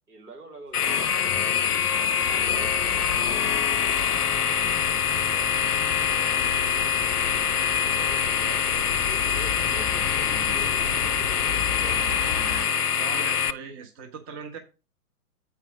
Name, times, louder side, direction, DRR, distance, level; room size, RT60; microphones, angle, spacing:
voice 1, 0.1-1.4 1.9-4.2 4.5-6.5 6.8-7.0 7.8-12.3, right 3 dB, 75° right, -1 dB, 3.2 m, -46 dB
sound 1, 0.7-13.5, left 7 dB, 80° left, 0.6 m, -24 dB
sound 2, 0.7-12.7, left 6 dB, 45° left, 0.7 m, -44 dB
sound 3, 2.2-12.7, left 6 dB, 20° left, 1.0 m, -36 dB
voice 2, 13.0-14.6, right 5 dB, 20° right, 4 dB, 1.1 m, -39 dB
8.2 x 4.9 x 5.1 m, 0.31 s
figure-of-eight pair, 120°, 46 cm